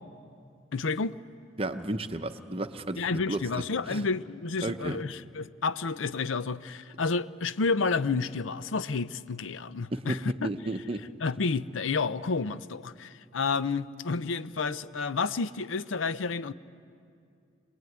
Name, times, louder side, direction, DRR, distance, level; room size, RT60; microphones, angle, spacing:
voice 1, 0.7-1.1 3.0-10.5 11.2-16.5, left 4 dB, 85° left, 14 dB, 0.6 m, -30 dB
voice 2, 1.6-3.4 3.9-4.1 4.6-5.0 9.9-10.2 10.4-11.0, right 1 dB, 30° right, 8 dB, 0.8 m, -33 dB
24.5 x 20.5 x 9.4 m, 2.4 s
head